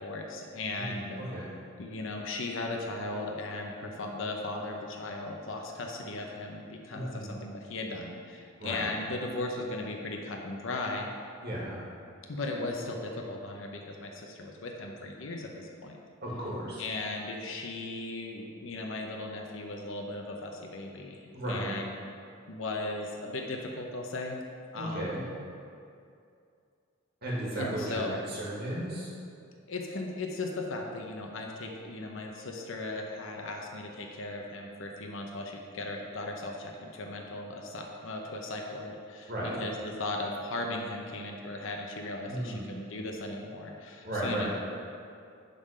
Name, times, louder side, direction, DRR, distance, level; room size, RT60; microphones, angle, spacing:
voice 1, 0.0-1.2 1.8-11.1 12.3-16.0 16.8-21.9 22.5-24.4 24.7-25.1 27.5-28.2 29.7-44.5, left 2 dB, 65° left, 1 dB, 0.8 m, -37 dB
voice 2, 0.8-1.5 6.9-7.3 8.6-8.9 11.4-11.8 16.2-16.8 21.3-21.7 24.8-25.2 27.2-28.0 28.3-29.1 39.3-39.6 42.3-42.7 44.0-44.5, right 1 dB, 50° right, -5 dB, 2.1 m, -34 dB
10.5 x 3.8 x 5.0 m, 2.4 s
head